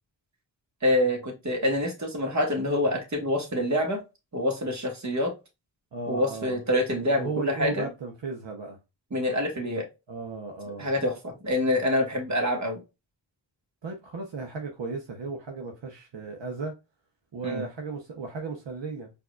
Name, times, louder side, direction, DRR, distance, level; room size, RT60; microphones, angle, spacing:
voice 1, 0.8-4.0 4.3-5.3 6.1-7.9 9.1-9.8 10.8-12.8 17.4-17.6, left 1 dB, 35° right, 1.5 m, -26 dB
voice 2, 5.9-6.6 7.1-8.8 10.1-10.9 13.8-16.7 17.3-19.1, right 4 dB, 70° right, 0.9 m, -35 dB
4.6 x 2.7 x 2.3 m
cardioid pair, 60°, 46 cm